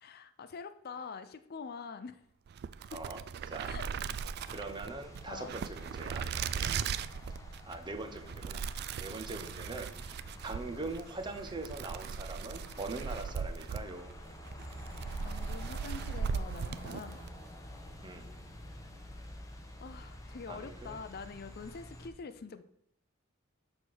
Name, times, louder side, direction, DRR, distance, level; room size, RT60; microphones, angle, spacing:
voice 1, 0.0-2.2 2.9-3.0 3.6-3.9 5.3-5.5 6.6-6.7 15.2-17.2 19.8-22.6, left 5 dB, 50° left, 11 dB, 0.5 m, -45 dB
sound 1, 2.5-17.4, right 6 dB, 50° right, 0.3 m, -39 dB
sound 2, 4.4-22.1, equal, 15° left, 0.9 m, -49 dB
voice 2, 4.5-6.3 6.6-6.9 7.7-8.6 9.0-9.9 10.4-14.1 18.0-18.3 20.5-21.0, right 2 dB, 20° right, 7 dB, 0.7 m, -42 dB
6.5 x 4.3 x 6.2 m, 0.73 s
head